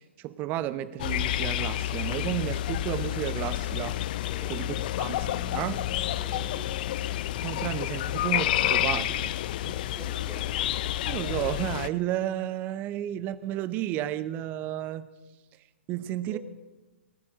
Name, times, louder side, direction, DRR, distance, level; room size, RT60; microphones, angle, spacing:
voice 1, 0.0-4.0 4.5-5.8 7.4-9.3 11.1-15.1 15.9-16.4, right 13 dB, 25° right, 15 dB, 0.7 m, -32 dB
sound 1, 1.0-11.9, left 14 dB, 45° left, 0.5 m, -29 dB
voice 2, 4.2-4.6 6.2-6.8 9.6-10.5 16.2-16.4, equal, 5° left, 0 dB, 3.1 m, -45 dB
sound 2, 5.1-10.0, left 3 dB, 65° left, 4.4 m, -46 dB
19.0 x 12.0 x 4.9 m, 1.1 s
figure-of-eight pair, 125°, 7 cm